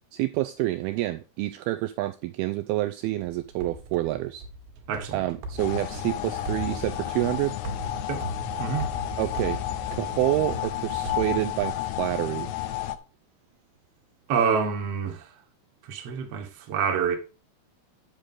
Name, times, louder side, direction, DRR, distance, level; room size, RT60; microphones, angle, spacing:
voice 1, 0.1-4.4 5.1-7.6 9.2-9.6 9.9-12.5, right 16 dB, 90° right, 2.2 m, -28 dB
sound 1, 3.2-12.0, right 1 dB, 75° right, 3.5 m, -39 dB
voice 2, 4.9-5.2 8.1-8.2 8.6-8.9 14.3-15.2 15.9-17.2, right 6 dB, 55° right, 1.9 m, -27 dB
sound 2, 5.6-13.0, left 12 dB, 80° left, 2.7 m, -32 dB
9.0 x 6.5 x 3.7 m
omnidirectional pair, 4.9 m